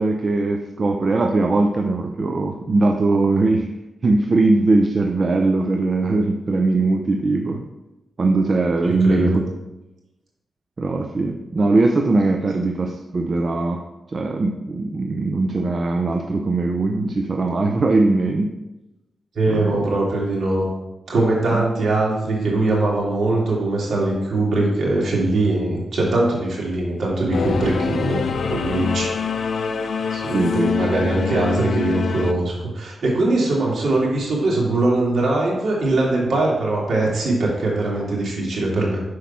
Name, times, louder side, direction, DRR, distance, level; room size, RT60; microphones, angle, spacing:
voice 1, 0.0-3.7 4.0-7.7 8.2-9.4 10.8-13.8 14.1-18.5 19.5-19.8 21.5-21.6 30.3-30.7, right 3 dB, 50° right, 3 dB, 0.6 m, -20 dB
voice 2, 8.8-9.4 19.3-20.7 21.1-29.1 30.1-39.0, right 2 dB, 70° right, -4 dB, 2.6 m, -21 dB
Singing / Musical instrument, 27.3-32.3, left 6 dB, 70° left, 0.5 m, -25 dB
6.1 x 4.9 x 5.6 m, 0.99 s
cardioid pair, 70°, 0 cm